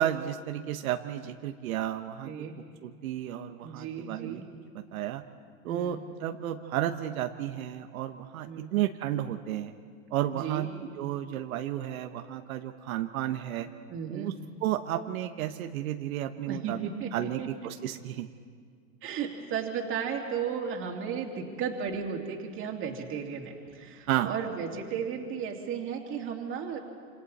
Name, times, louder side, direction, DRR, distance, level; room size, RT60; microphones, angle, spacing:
voice 1, 0.0-2.3 2.8-4.4 4.7-5.2 5.6-9.7 10.1-10.7 11.0-13.7 14.1-14.3 14.6-18.3 24.1-24.3, right 12 dB, 80° right, 6 dB, 1.1 m, -32 dB
voice 2, 2.3-2.6 3.6-4.5 5.7-6.0 8.4-8.7 10.3-10.7 13.9-14.3 16.5-17.1 17.4-17.5 19.0-26.8, right 7 dB, 30° right, 1 dB, 2.7 m, -34 dB
27.5 x 26.5 x 4.2 m, 2.1 s
supercardioid pair, 145°, 42 cm